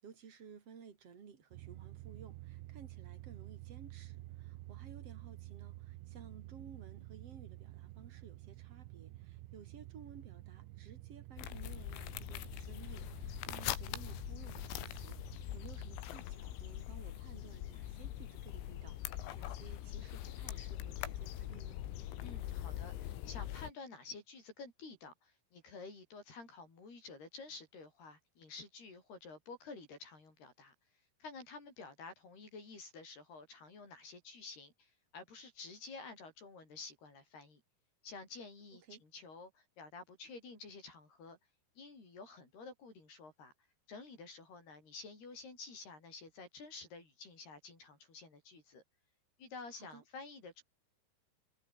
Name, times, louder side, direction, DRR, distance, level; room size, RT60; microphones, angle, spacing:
voice 1, 0.0-21.8 38.9-39.0 49.8-50.0, right 6 dB, 35° right, 2.8 m, -56 dB
sound 1, 1.5-16.0, right 18 dB, 80° right, 3.1 m, -50 dB
sound 2, 11.4-23.7, left 13 dB, 90° left, 4.8 m, -43 dB
voice 2, 22.2-30.7 31.2-37.6 38.0-41.4 41.8-43.5 43.9-48.8 49.4-50.6, left 4 dB, 50° left, 9.6 m, -51 dB
omnidirectional pair, 6.0 m